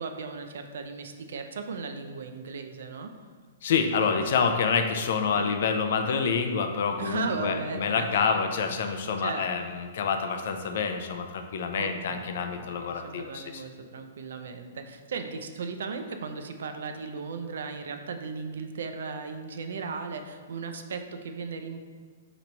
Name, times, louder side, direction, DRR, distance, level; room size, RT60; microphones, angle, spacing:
voice 1, 0.0-3.1 5.3-5.5 7.0-8.3 9.2-9.5 11.7-21.8, right 4 dB, 65° right, 6 dB, 0.4 m, -36 dB
voice 2, 3.6-13.6, left 5 dB, 45° left, 6 dB, 0.3 m, -27 dB
4.5 x 3.0 x 3.9 m, 1.5 s
hypercardioid pair, 180°, 0 cm